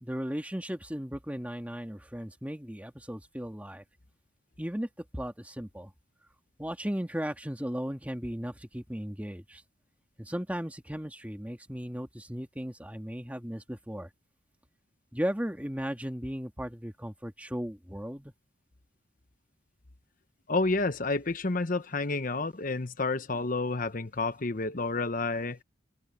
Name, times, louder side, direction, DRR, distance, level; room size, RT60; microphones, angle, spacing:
voice 1, 0.0-3.8 4.6-4.9 5.1-5.9 6.6-9.6 10.2-14.1 15.1-18.3, equal, 10° right, 2.1 m, -36 dB
voice 2, 20.5-25.6, left 3 dB, 45° left, 1.0 m, -30 dB
head